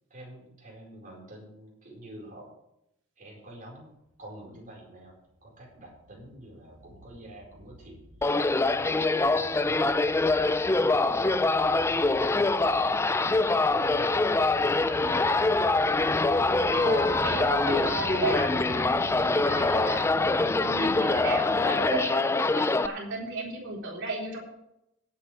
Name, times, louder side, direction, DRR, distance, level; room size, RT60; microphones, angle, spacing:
voice 1, 0.1-2.5 3.2-3.9 4.2-5.1 5.4-8.3 8.8-14.2 14.5-15.3, right 1 dB, 40° right, -2 dB, 4.6 m, -48 dB
sound 1, 4.7-4.8 5.1-5.2 5.5-22.1, equal, 85° right, 2.3 m, -46 dB
sound 2, 8.2-22.9, left 3 dB, 10° left, 0.3 m, -24 dB
voice 2, 16.7-24.4, right 2 dB, 60° right, -2 dB, 3.9 m, -34 dB
20.5 x 8.6 x 3.4 m, 0.81 s
head